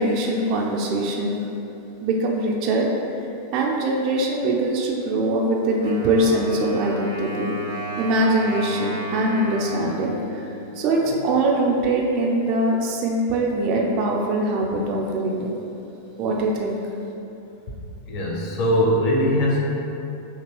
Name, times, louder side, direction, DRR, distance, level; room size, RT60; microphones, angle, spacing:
voice 1, 0.0-1.4 2.0-2.9 3.5-7.5 8.0-15.6 16.2-16.8, right 1 dB, 40° right, -1 dB, 0.4 m, -22 dB
Wind instrument woodwind instrument, 5.8-11.4, right 1 dB, 80° left, 1.3 m, -33 dB
voice 2, 18.0-19.6, equal, 40° left, -2 dB, 0.6 m, -21 dB
2.9 x 2.8 x 3.0 m, 2.8 s
figure-of-eight pair, 90°, 0 cm